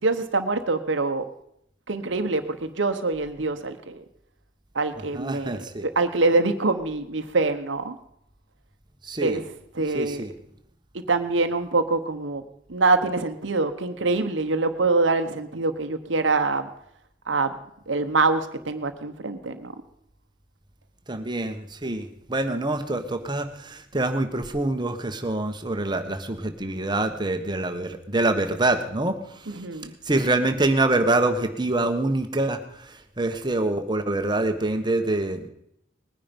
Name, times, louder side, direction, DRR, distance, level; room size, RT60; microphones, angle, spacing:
voice 1, 0.0-1.2 1.9-4.0 4.7-8.0 9.2-9.4 9.8-10.2 10.9-12.4 12.7-16.7 17.3-17.5 17.9-19.7 29.5-29.9, right 3 dB, 70° right, 8 dB, 1.0 m, -24 dB
voice 2, 5.1-5.8 9.0-9.4 9.9-10.3 21.1-29.6 30.0-35.5, right 2 dB, 25° right, 7 dB, 1.3 m, -25 dB
20.0 x 10.0 x 5.3 m, 0.74 s
head